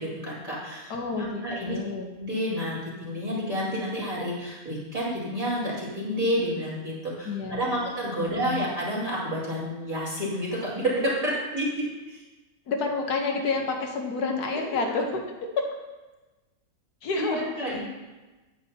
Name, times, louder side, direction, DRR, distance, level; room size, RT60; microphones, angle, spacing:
voice 1, 0.0-0.9 1.2-1.8 2.2-12.2 17.2-17.8, equal, 25° right, -8 dB, 2.4 m, -29 dB
voice 2, 0.9-2.1 7.2-7.8 8.2-8.6 12.7-15.2 17.0-17.8, left 4 dB, 85° left, 2 dB, 1.5 m, -29 dB
8.6 x 8.3 x 2.8 m, 1.2 s
omnidirectional pair, 1.6 m